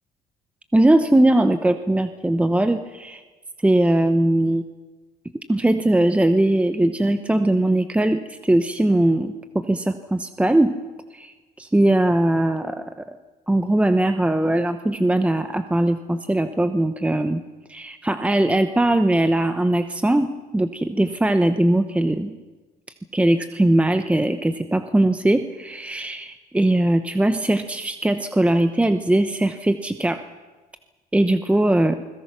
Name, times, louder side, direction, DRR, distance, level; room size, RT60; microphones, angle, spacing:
voice 1, 0.7-3.2 3.6-4.6 5.5-10.8 11.1-13.2 13.5-17.4 17.7-22.4 23.1-30.2 31.1-32.0, right 1 dB, 5° right, 9 dB, 0.9 m, -20 dB
29.0 x 21.0 x 6.1 m, 1.3 s
cardioid pair, 110°, 17 cm